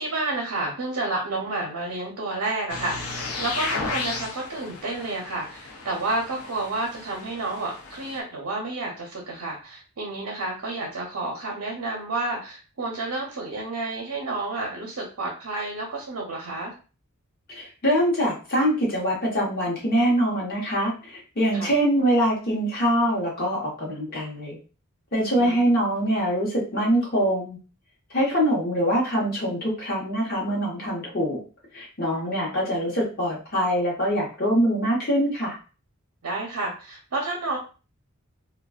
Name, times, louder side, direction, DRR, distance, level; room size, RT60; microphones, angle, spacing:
voice 1, 0.0-16.7 21.5-21.7 25.3-25.6 32.1-32.5 36.2-37.6, right 2 dB, 75° right, -1 dB, 0.6 m, -30 dB
sound 1, 2.7-8.2, left 3 dB, 75° left, 0.5 m, -34 dB
voice 2, 17.5-24.6 25.1-27.6 28.1-31.4 31.7-35.6, equal, 45° left, -4 dB, 0.8 m, -24 dB
2.5 x 2.2 x 2.3 m, 0.35 s
head